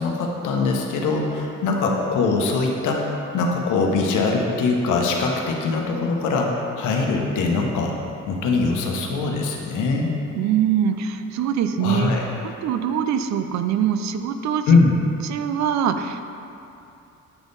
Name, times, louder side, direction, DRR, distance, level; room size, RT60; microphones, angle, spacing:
voice 1, 0.0-7.9 8.3-10.2 11.8-12.2 14.7-14.9, left 3 dB, 80° left, 0 dB, 0.9 m, -22 dB
voice 2, 10.4-12.1 12.6-14.7 15.3-16.2, right 8 dB, 65° right, 9 dB, 0.4 m, -23 dB
8.0 x 3.5 x 4.0 m, 2.7 s
cardioid pair, 90°, 30 cm